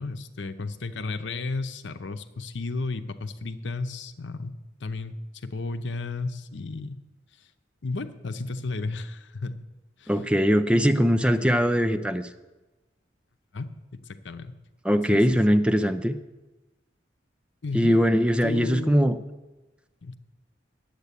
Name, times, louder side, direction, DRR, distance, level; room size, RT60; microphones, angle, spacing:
voice 1, 0.0-5.1 5.4-7.0 7.8-9.6 10.0-10.2 13.5-14.6 15.1-15.2 17.6-18.0 18.4-19.0 20.0-20.2, left 3 dB, 85° left, 10 dB, 0.7 m, -33 dB
voice 2, 10.1-12.3 14.8-16.2 17.7-19.1, equal, 5° right, 8 dB, 0.5 m, -21 dB
10.5 x 8.1 x 8.3 m, 1.1 s
head